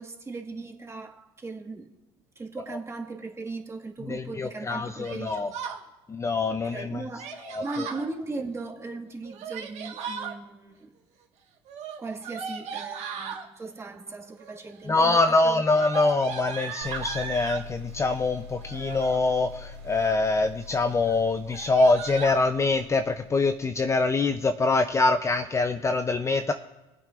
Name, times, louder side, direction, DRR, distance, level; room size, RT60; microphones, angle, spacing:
voice 1, 0.0-1.9 2.4-5.5 6.6-10.9 12.0-15.6, right 3 dB, 20° right, 1.9 m, -38 dB
voice 2, 4.1-5.5 6.1-7.0 7.5-7.9 14.9-26.5, left 3 dB, 20° left, 0.6 m, -24 dB
Yell, 5.0-5.8 7.2-8.1 9.2-10.3 11.6-13.4 14.3-14.7 15.0-17.7 18.6-19.2 19.7-20.3 20.6-20.8 21.0-21.2 21.5-22.4, right 7 dB, 60° right, 1.6 m, -37 dB
sound 1, 16.8-24.3, left 4 dB, 85° right, 2.8 m, -44 dB
21.0 x 8.6 x 2.5 m
hypercardioid pair, 80°, 13 cm